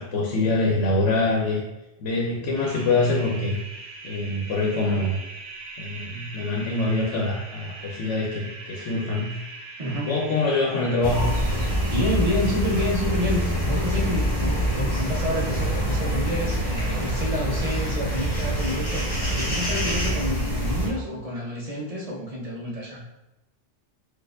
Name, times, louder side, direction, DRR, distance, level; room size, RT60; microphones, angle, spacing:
voice 1, 0.0-1.6 2.0-3.6 4.0-5.2 5.8-9.3 10.0-11.4, left 2 dB, 85° left, -2 dB, 0.9 m, -24 dB
sound 1, 2.5-21.2, right 3 dB, 80° right, 0.9 m, -41 dB
voice 2, 9.8-10.2 11.9-23.0, left 1 dB, 50° right, -3 dB, 0.4 m, -29 dB
sound 2, 11.0-20.9, equal, 25° left, 0.8 m, -25 dB
4.2 x 2.5 x 2.3 m, 0.95 s
omnidirectional pair, 1.2 m